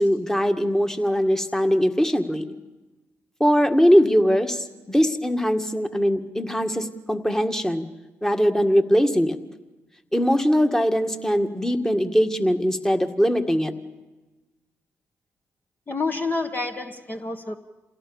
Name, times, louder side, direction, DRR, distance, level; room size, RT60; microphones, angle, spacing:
voice 1, 0.0-2.5 3.4-7.9 8.2-9.4 10.1-13.7, equal, 10° left, 6 dB, 1.9 m, -21 dB
voice 2, 15.9-17.6, left 3 dB, 30° left, 4 dB, 1.4 m, -28 dB
27.5 x 16.5 x 7.1 m, 1.1 s
hypercardioid pair, 45°, 6 cm